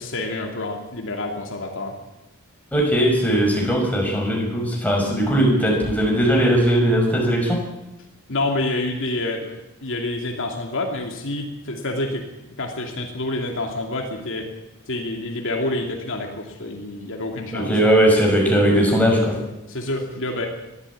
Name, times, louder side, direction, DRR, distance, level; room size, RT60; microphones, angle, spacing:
voice 1, 0.0-2.0 8.3-12.2 12.6-14.5 14.9-17.7 19.7-20.5, left 2 dB, 60° left, 2 dB, 2.8 m, -28 dB
voice 2, 2.7-7.6 17.5-19.4, equal, 5° left, -1 dB, 5.9 m, -19 dB
22.0 x 14.0 x 8.6 m, 0.95 s
head